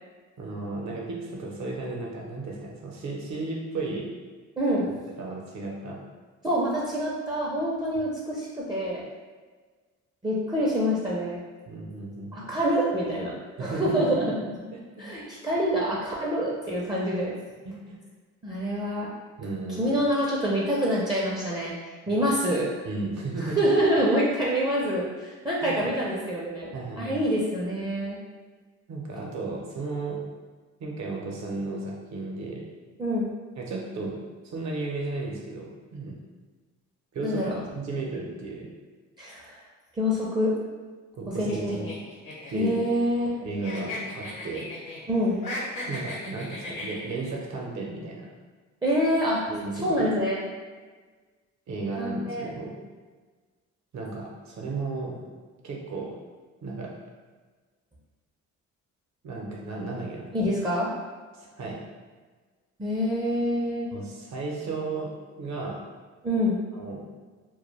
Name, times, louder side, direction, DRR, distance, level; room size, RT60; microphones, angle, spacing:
voice 1, 0.4-4.1 5.2-6.0 11.7-12.5 13.6-14.1 14.7-14.8 17.6-18.0 19.4-20.0 22.1-22.2 22.8-23.6 25.6-25.7 26.7-27.2 28.9-30.2 30.8-32.7 33.6-34.2 34.4-36.2 37.1-38.7 41.1-41.9 42.5-42.8 43.4-44.7 45.8-48.3 49.5-50.1 51.7-52.8 53.9-55.3 55.6-56.2 56.6-56.9 59.2-60.3 61.3-61.8 63.9-65.1 65.4-65.8 66.7-67.0, right 3 dB, 65° right, -1 dB, 0.7 m, -34 dB
voice 2, 4.6-4.9 6.4-9.0 10.2-11.4 12.3-14.3 15.0-17.3 18.4-19.1 19.8-22.7 23.4-28.2 33.0-33.3 37.2-37.6 39.2-39.6 40.0-40.5 41.4-41.9 42.5-43.3 45.1-45.4 48.8-49.5 49.8-50.4 52.0-52.5 60.3-60.9 62.8-63.9 66.2-66.6, equal, 15° right, -6 dB, 0.4 m, -26 dB
sound 1, 41.5-43.4 43.6-45.0 45.3-47.3, left 1 dB, 80° left, 0.9 m, -37 dB
2.2 x 2.2 x 3.1 m, 1.4 s
cardioid pair, 90°, 30 cm